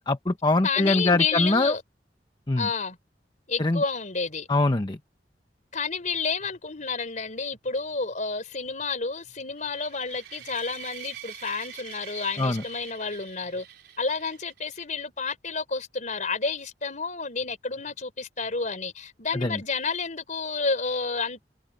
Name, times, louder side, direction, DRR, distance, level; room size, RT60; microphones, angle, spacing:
voice 1, 0.0-1.7 2.5-2.7 3.6-3.8 4.5-5.0 12.4-12.6 19.3-19.6, left 2 dB, 25° left, 0.9 m, -23 dB
voice 2, 0.6-1.8 2.6-3.0 3.5-4.5 5.7-13.7 14.0-21.4, left 4 dB, 45° left, 4.1 m, -30 dB
sound 1, 9.6-14.8, right 11 dB, 65° right, 5.2 m, -45 dB
head